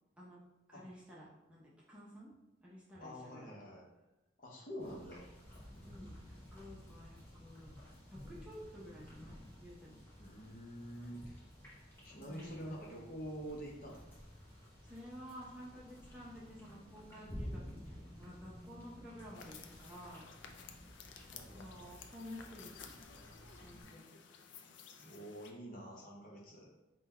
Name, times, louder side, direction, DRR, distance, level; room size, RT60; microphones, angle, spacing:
voice 1, 0.7-2.3 2.6-3.5 5.8-7.7 8.1-10.0 12.2-12.8 14.8-20.3 21.5-23.0 23.6-24.1, equal, 5° right, -7 dB, 0.7 m, -52 dB
voice 2, 3.0-3.9 4.4-5.2 10.2-11.4 12.0-14.0 21.3-21.9 25.0-26.7, equal, 45° left, -2 dB, 0.8 m, -47 dB
sound 1, 4.8-23.8, equal, 10° left, 1.0 m, -53 dB
sound 2, 19.3-25.5, left 6 dB, 70° left, 0.4 m, -55 dB
3.9 x 2.3 x 4.2 m, 0.99 s
head